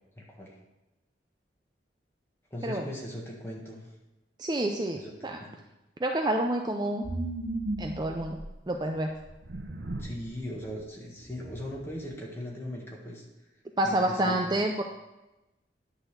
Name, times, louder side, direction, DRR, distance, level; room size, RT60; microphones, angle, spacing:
voice 1, 0.1-0.6 2.5-3.9 4.9-5.6 10.0-13.2 13.8-14.6, equal, 15° left, -3 dB, 1.6 m, -39 dB
voice 2, 4.4-5.4 6.0-7.0 7.8-8.4 8.7-9.1 13.8-14.8, right 1 dB, 25° right, 3 dB, 0.4 m, -28 dB
sound 1, 7.0-8.6 9.2-10.2 10.6-10.8 11.2-12.0, right 2 dB, 75° right, 0.8 m, -36 dB
10.5 x 4.1 x 6.7 m, 1.0 s
head